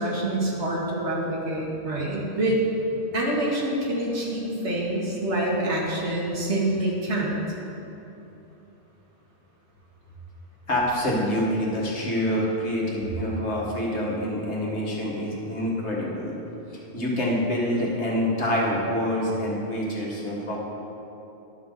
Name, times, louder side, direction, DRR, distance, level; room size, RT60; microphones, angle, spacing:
voice 1, 0.0-2.6 3.1-7.4, right 1 dB, 80° right, -3 dB, 1.8 m, -26 dB
voice 2, 10.7-16.4 16.7-20.6, left 1 dB, 80° left, -4 dB, 1.9 m, -26 dB
11.0 x 4.0 x 6.5 m, 3.0 s
omnidirectional pair, 1.1 m